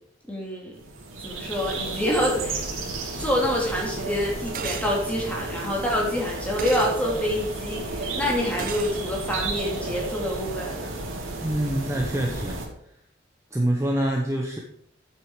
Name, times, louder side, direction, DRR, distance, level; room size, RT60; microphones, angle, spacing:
voice 1, 0.3-0.8 1.2-2.6 3.2-10.9, equal, 5° left, -3 dB, 2.7 m, -27 dB
sound 1, 0.8-12.7, right 2 dB, 90° right, 2.6 m, -33 dB
sound 2, 4.5-4.9 6.6-6.9 8.6-8.9, right 6 dB, 45° right, 0.8 m, -33 dB
voice 2, 11.4-12.6 13.5-14.6, right 1 dB, 15° right, 1 dB, 0.9 m, -25 dB
9.0 x 7.6 x 5.0 m, 0.66 s
head